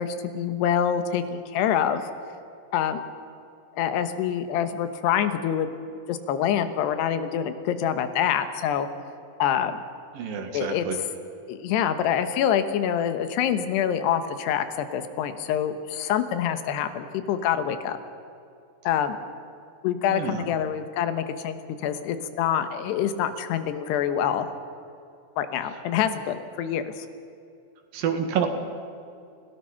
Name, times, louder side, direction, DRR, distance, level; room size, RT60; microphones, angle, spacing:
voice 1, 0.0-2.1 2.7-3.0 3.7-5.7 6.1-8.9 9.4-9.8 10.5-10.9 11.5-18.0 18.8-19.2 19.8-24.5 25.4-27.1, left 9 dB, 80° left, 9 dB, 3.3 m, -26 dB
voice 2, 10.2-11.0 20.1-20.5 27.9-28.5, right 8 dB, 65° right, 6 dB, 3.2 m, -28 dB
28.5 x 17.0 x 5.8 m, 2.6 s
omnidirectional pair, 4.8 m